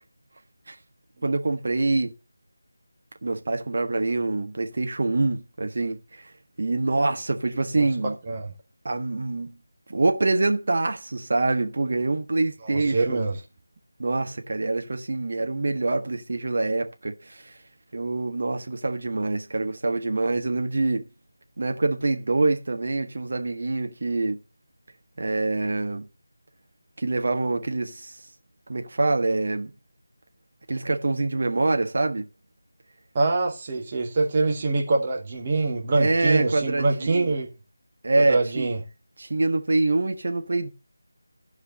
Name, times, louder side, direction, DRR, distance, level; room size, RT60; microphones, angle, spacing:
voice 1, 1.2-2.1 3.2-6.3 6.6-8.2 8.8-9.6 9.9-13.2 14.0-17.6 17.9-21.1 21.6-24.4 25.2-26.1 27.0-28.1 28.7-29.7 30.7-32.3 36.0-37.3 38.0-38.7 39.2-40.7, right 2 dB, 45° right, 1.4 m, -25 dB
voice 2, 12.6-13.4 33.1-37.5 38.2-38.8, right 3 dB, 25° right, 1.6 m, -24 dB
14.0 x 5.0 x 6.5 m
figure-of-eight pair, 160°, 0 cm